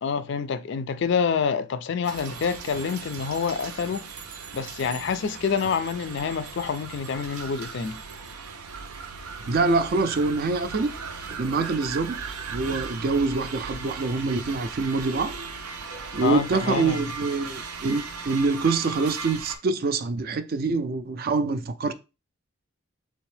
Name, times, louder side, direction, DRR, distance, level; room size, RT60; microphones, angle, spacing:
voice 1, 0.0-4.0 4.5-8.0 16.2-17.0, left 6 dB, 55° left, 0.3 m, -27 dB
sound 1, 2.0-19.6, right 5 dB, 90° right, 0.6 m, -38 dB
voice 2, 9.4-12.2 12.5-15.3 16.1-21.9, right 3 dB, 45° right, 0.3 m, -25 dB
3.5 x 3.3 x 3.2 m
head